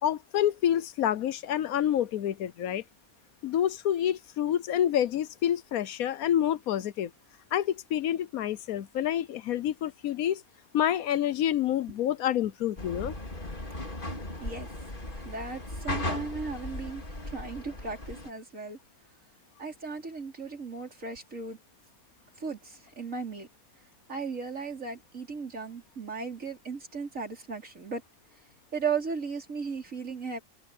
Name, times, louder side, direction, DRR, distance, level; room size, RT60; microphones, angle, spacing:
voice 1, 0.0-2.8 3.4-7.1 7.5-10.4 10.7-13.1, left 10 dB, 75° left, 1.2 m, -28 dB
sound 1, 12.8-18.3, left 1 dB, 35° left, 3.2 m, -37 dB
voice 2, 15.1-18.8 19.6-21.6 22.4-23.5 24.1-28.0 28.7-30.4, right 5 dB, 60° right, 4.8 m, -36 dB
omnidirectional pair, 1.5 m